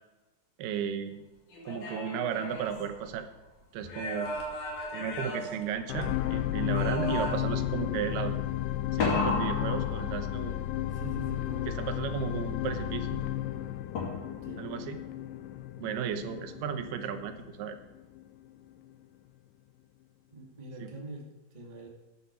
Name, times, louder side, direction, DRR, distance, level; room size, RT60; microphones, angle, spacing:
voice 1, 0.6-1.3 1.7-3.3 3.7-4.3 4.9-8.4 8.9-10.6 11.7-13.2 14.6-15.0 15.8-17.8 20.8-20.9, right 8 dB, 90° right, 8 dB, 3.1 m, -34 dB
sound 1, 1.5-3.4 3.8-6.3 6.7-7.7 9.0-10.6 14.0-14.6, left 3 dB, 50° left, 3.6 m, -34 dB
sound 2, 5.9-18.3 18.9-19.0, left 13 dB, 80° left, 2.0 m, -33 dB
voice 2, 9.7-10.0 10.9-11.9 14.4-14.6 20.3-21.9, right 1 dB, 15° right, -1 dB, 1.8 m, -44 dB
13.0 x 10.0 x 4.7 m, 1.1 s
omnidirectional pair, 4.4 m